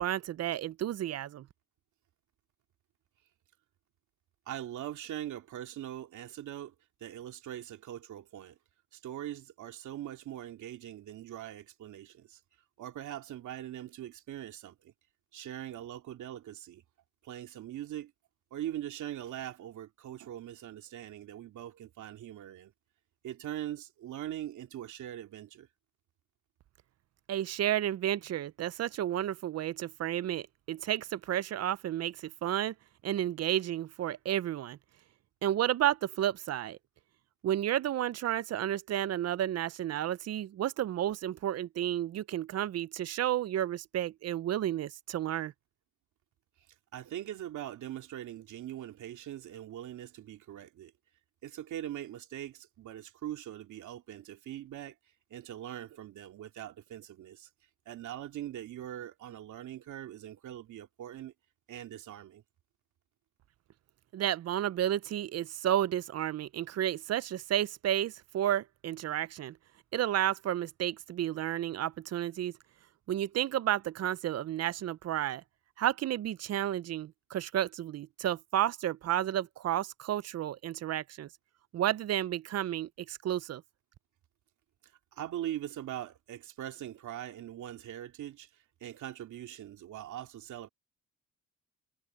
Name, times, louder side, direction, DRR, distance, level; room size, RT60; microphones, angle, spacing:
voice 1, 0.0-1.5 27.3-32.7 33.0-34.8 35.4-36.8 37.4-45.5 64.1-69.6 69.9-72.5 73.1-75.4 75.8-81.3 81.7-83.6, right 12 dB, 55° right, 0.6 m, -31 dB
voice 2, 4.5-6.7 7.0-8.6 8.9-12.4 12.8-14.9 15.3-16.8 17.2-18.1 18.5-22.7 23.2-25.7 46.9-50.9 51.4-55.0 55.3-57.5 57.9-61.3 61.7-62.4 85.1-90.7, right 12 dB, 75° right, 2.5 m, -42 dB
cardioid pair, 90°, 30 cm